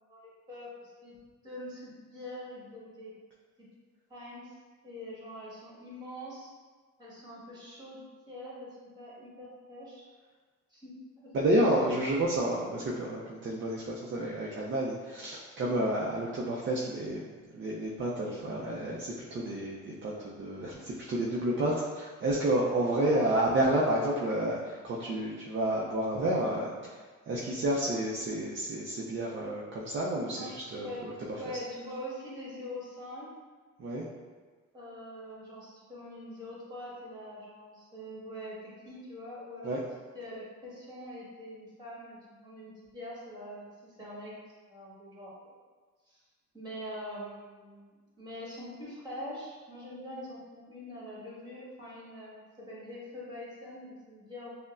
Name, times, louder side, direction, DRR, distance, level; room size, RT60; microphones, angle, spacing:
voice 1, 0.1-1.1 1.4-3.1 3.6-3.7 4.1-4.5 4.8-6.5 7.0-8.0 8.3-8.7 8.9-10.0 10.7-11.3 11.8-12.0 23.0-23.5 30.3-30.5 30.8-33.3 34.7-38.6 38.8-39.8 40.1-44.4 44.7-45.4 46.1-46.2 46.5-47.9 48.2-54.6, left 1 dB, 15° right, -7 dB, 1.4 m, -43 dB
voice 2, 11.3-17.2 17.5-31.1 33.8-34.0 39.6-39.8, right 1 dB, 40° right, -5 dB, 0.5 m, -30 dB
5.1 x 2.1 x 2.4 m, 1.4 s
cardioid pair, 90°, 30 cm